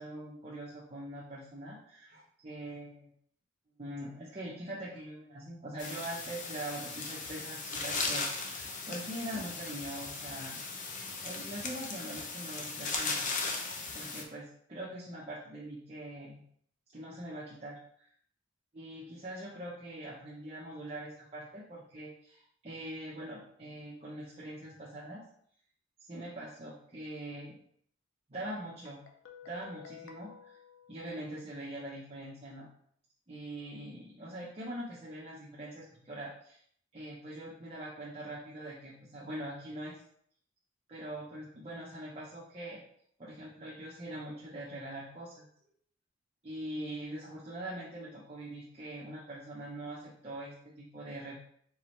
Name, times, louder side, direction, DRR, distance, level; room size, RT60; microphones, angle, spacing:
voice 1, 0.0-3.1 3.8-10.6 11.2-13.2 13.9-16.4 16.9-18.1 18.7-25.3 26.0-27.6 28.3-29.0 29.4-30.6 30.9-32.7 33.3-36.6 36.9-40.0 40.9-42.8 43.2-45.5 46.4-51.4, right 1 dB, 30° right, -6 dB, 0.8 m, -43 dB
sound 1, 5.8-14.2, left 3 dB, 40° left, 0.6 m, -37 dB
Guitar, 28.9-31.6, left 8 dB, 75° left, 0.6 m, -53 dB
4.6 x 3.2 x 3.1 m, 0.65 s
head